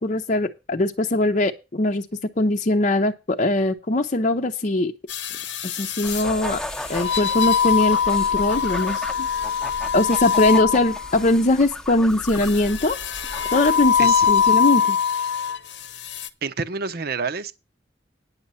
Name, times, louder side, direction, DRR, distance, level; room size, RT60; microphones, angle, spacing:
voice 1, 0.0-4.9 5.6-6.6 6.9-9.3 9.9-13.0 13.5-15.0, left 2 dB, 40° left, 0.7 m, -21 dB
sound 1, 5.1-6.2 6.9-11.2 12.4-15.6 16.0-16.3, left 7 dB, 70° left, 0.9 m, -22 dB
sound 2, 6.0-14.5, left 1 dB, 5° left, 0.9 m, -36 dB
voice 2, 16.4-17.5, right 5 dB, 55° right, 0.8 m, -28 dB
9.8 x 7.3 x 5.6 m
head